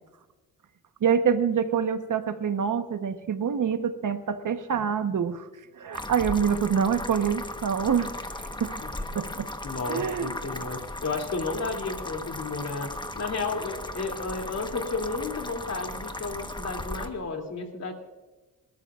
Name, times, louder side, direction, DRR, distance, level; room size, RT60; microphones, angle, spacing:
voice 1, 1.0-5.5 5.8-8.1 8.6-8.8 9.1-9.5 9.9-10.3, right 7 dB, 60° right, 8 dB, 1.2 m, -26 dB
sound 1, 5.9-17.1, left 1 dB, 15° left, 1.2 m, -36 dB
voice 2, 9.3-17.9, left 3 dB, 45° left, 2 dB, 2.9 m, -33 dB
27.0 x 13.5 x 2.5 m, 1.3 s
cardioid pair, 85°, 35 cm